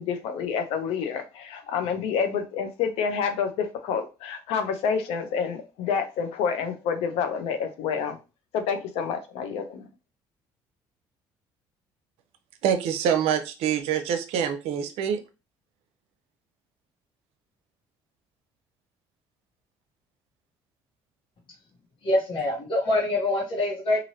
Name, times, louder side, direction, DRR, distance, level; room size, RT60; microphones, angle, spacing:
voice 1, 0.0-8.2 8.5-9.8, left 6 dB, 80° left, 0.6 m, -28 dB
voice 2, 12.6-15.2, right 8 dB, 80° right, 0.6 m, -25 dB
voice 3, 22.0-24.0, left 2 dB, 55° left, 1.1 m, -24 dB
3.1 x 2.5 x 2.7 m
supercardioid pair, 75°, 10 cm